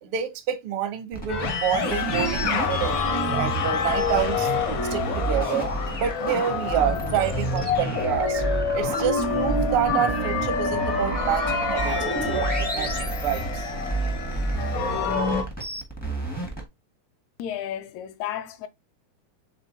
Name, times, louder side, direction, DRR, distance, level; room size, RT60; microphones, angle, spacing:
voice 1, 0.0-4.5 4.9-5.7 6.0-8.4 8.7-13.7, right 9 dB, 80° right, 1.2 m, -28 dB
sound 1, 1.1-16.6, right 3 dB, 15° left, 0.3 m, -30 dB
sound 2, 1.3-15.4, left 4 dB, 65° left, 1.2 m, -27 dB
voice 2, 17.4-18.7, left 10 dB, 80° left, 1.9 m, -32 dB
5.4 x 3.6 x 2.7 m
omnidirectional pair, 3.3 m